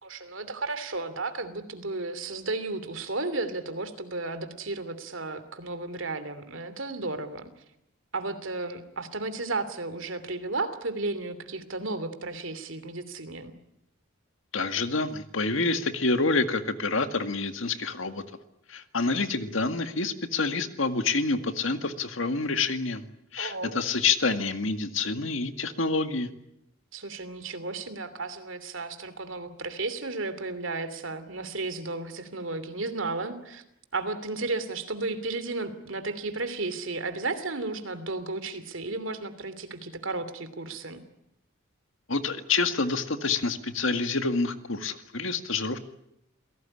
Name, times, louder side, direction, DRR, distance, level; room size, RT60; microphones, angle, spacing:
voice 1, 0.0-7.5 8.1-13.5 23.4-23.8 26.9-33.6 33.9-41.0, right 3 dB, 65° right, 11 dB, 2.9 m, -33 dB
voice 2, 14.5-18.2 18.7-23.1 23.3-26.3 42.1-45.8, left 3 dB, 65° left, 9 dB, 1.9 m, -27 dB
28.0 x 18.0 x 10.0 m, 0.81 s
head